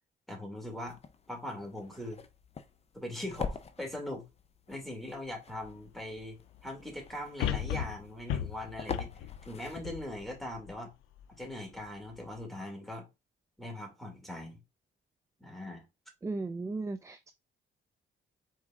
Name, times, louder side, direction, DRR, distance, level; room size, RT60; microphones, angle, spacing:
voice 1, 0.3-1.0 1.3-2.2 2.9-4.3 4.7-9.1 9.4-10.9 11.4-13.1 13.6-14.6 15.4-15.8, left 1 dB, ahead, 2.3 m, -41 dB
sound 1, 0.7-10.2, left 5 dB, 30° left, 0.6 m, -45 dB
sound 2, 5.7-5.8 7.4-10.7 11.2-11.3, left 10 dB, 85° left, 0.4 m, -35 dB
voice 2, 16.2-17.3, right 3 dB, 15° right, 0.4 m, -36 dB
4.7 x 4.1 x 2.4 m
cardioid pair, 90°, 20 cm